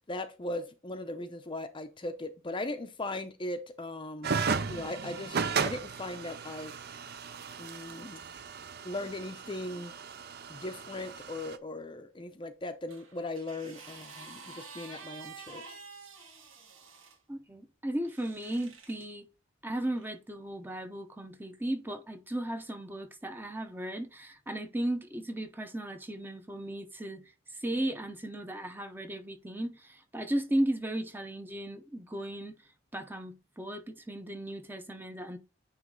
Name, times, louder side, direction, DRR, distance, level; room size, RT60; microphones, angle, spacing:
voice 1, 0.1-4.3 4.7-6.7 7.6-8.2 8.8-9.9 10.5-15.8, left 2 dB, 25° left, 0.6 m, -38 dB
sound 1, 4.2-11.6, right 5 dB, 50° right, 0.6 m, -35 dB
sound 2, 12.9-17.2 18.0-19.1 20.0-20.1, right 4 dB, 70° right, 2.1 m, -49 dB
voice 2, 17.3-19.3 19.6-27.2 27.5-32.6 32.9-35.4, right 1 dB, 10° right, 0.7 m, -35 dB
9.4 x 3.2 x 3.8 m
head